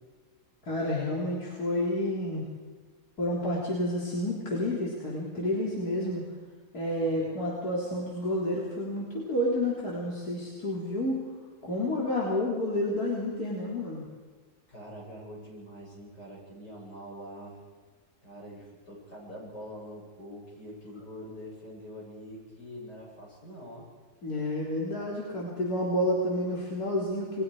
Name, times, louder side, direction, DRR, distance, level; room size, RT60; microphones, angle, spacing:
voice 1, 0.7-2.4 3.2-6.2 6.7-11.2 11.6-14.0 24.2-27.4, left 1 dB, 65° left, -4 dB, 4.0 m, -30 dB
voice 2, 14.7-17.6 18.2-23.9, equal, 85° left, -4 dB, 8.8 m, -44 dB
29.5 x 21.5 x 4.9 m, 1.5 s
omnidirectional pair, 1.7 m